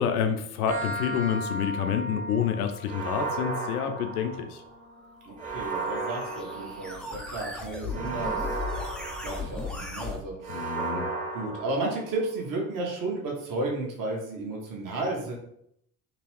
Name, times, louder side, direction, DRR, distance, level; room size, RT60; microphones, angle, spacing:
voice 1, 0.0-4.6 10.5-11.1, left 8 dB, 65° left, 8 dB, 0.6 m, -28 dB
sound 1, 0.7-8.1, equal, 75° right, 1.2 m, -39 dB
sound 2, 2.9-4.7 5.4-7.2 7.9-9.8 10.4-12.3, right 3 dB, 15° right, 0.9 m, -34 dB
sound 3, 5.2-10.2, left 3 dB, ahead, 0.4 m, -37 dB
voice 2, 5.2-8.6 9.2-10.7 11.3-15.3, right 2 dB, 40° right, 0 dB, 1.1 m, -33 dB
3.0 x 3.0 x 3.1 m, 0.73 s
figure-of-eight pair, 55°, 48 cm